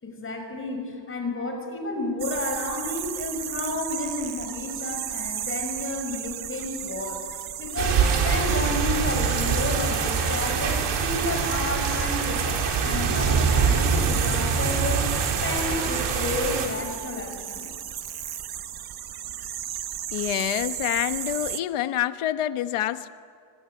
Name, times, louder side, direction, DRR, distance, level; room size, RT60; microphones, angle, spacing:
voice 1, 0.0-15.1 15.4-17.7, left 2 dB, 25° left, 4 dB, 6.0 m, -31 dB
sound 1, 2.2-21.6, right 10 dB, 50° right, 1.1 m, -34 dB
sound 2, 7.8-16.7, right 6 dB, 85° right, 5.1 m, -24 dB
voice 2, 20.1-23.1, left 12 dB, 90° left, 10 dB, 1.2 m, -27 dB
26.0 x 24.5 x 9.2 m, 2.2 s
cardioid pair, 155°, 50 cm